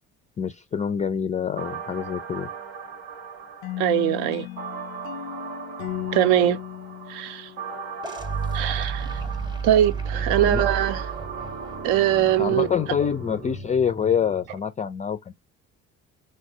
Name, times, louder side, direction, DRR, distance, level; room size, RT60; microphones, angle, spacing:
voice 1, 0.4-2.5 10.3-10.6 12.4-15.3, left 7 dB, 20° left, 0.3 m, -26 dB
sound 1, 1.6-13.6, right 6 dB, 85° right, 0.9 m, -39 dB
sound 2, 3.6-8.5, left 13 dB, 85° left, 0.5 m, -36 dB
voice 2, 3.8-4.5 6.1-6.6 7.1-7.5 8.5-9.2 9.6-11.1 11.8-12.7, right 11 dB, 70° right, 0.5 m, -22 dB
sound 3, 8.0-14.6, right 5 dB, 10° right, 0.6 m, -32 dB
3.2 x 2.0 x 2.6 m
hypercardioid pair, 60°, 40 cm